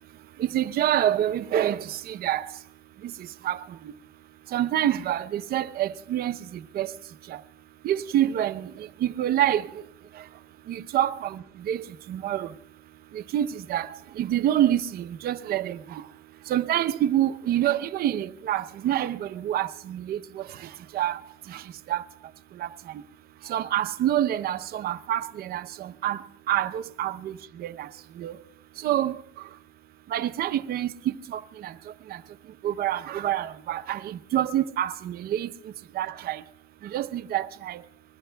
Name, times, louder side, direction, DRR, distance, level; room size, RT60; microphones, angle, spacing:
voice 1, 0.4-2.5 3.4-3.6 4.5-6.4 6.7-6.9 7.3-7.4 7.8-9.7 10.9-12.5 13.1-16.0 16.5-20.5 20.9-21.2 21.5-21.6 21.9-22.0 22.6-22.7 23.5-26.2 26.5-27.9 28.2-28.4 28.8-29.2 30.1-31.7 32.1-32.2 32.6-35.5 36.0-36.4 36.8-37.8, right 12 dB, 65° right, 0.7 m, -27 dB
27.5 x 21.5 x 2.3 m
cardioid pair, 110°, 17 cm